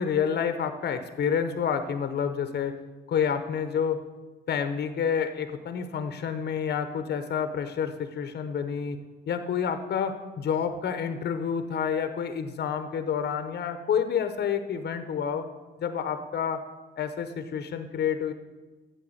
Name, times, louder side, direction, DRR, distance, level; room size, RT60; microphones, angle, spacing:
voice 1, 0.0-2.7 3.1-4.0 4.5-9.0 9.3-15.5 15.8-16.6 17.0-18.3, left 7 dB, 55° left, 9 dB, 0.9 m, -29 dB
7.8 x 6.7 x 7.9 m, 1.2 s
cardioid pair, 90°, 20 cm